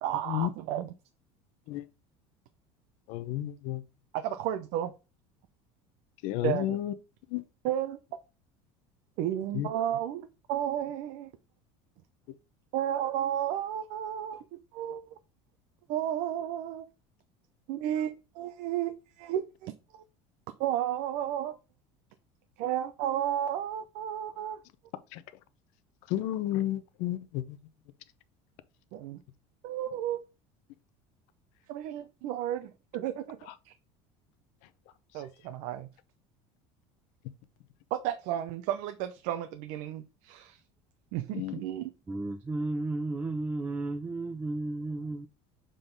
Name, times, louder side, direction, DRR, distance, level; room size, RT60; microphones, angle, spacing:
voice 1, 0.0-0.9 4.1-4.9 6.4-6.8 7.6-8.0 9.2-11.3 12.7-15.1 15.9-16.9 17.7-20.0 20.6-21.6 22.6-24.6 28.9-29.2 29.6-30.2 31.7-33.7 35.1-35.9 37.9-40.6 41.1-41.9, right 11 dB, 65° right, 0.6 m, -33 dB
voice 2, 3.1-3.8 6.2-6.9 7.3-7.4 9.5-9.7 25.1-25.2 26.1-27.6 33.5-33.6 35.2-35.3 41.3-41.6, left 13 dB, 65° left, 0.7 m, -32 dB
voice 3, 42.1-45.3, right 2 dB, 10° right, 0.4 m, -33 dB
6.8 x 3.8 x 3.9 m
cardioid pair, 145°, 14 cm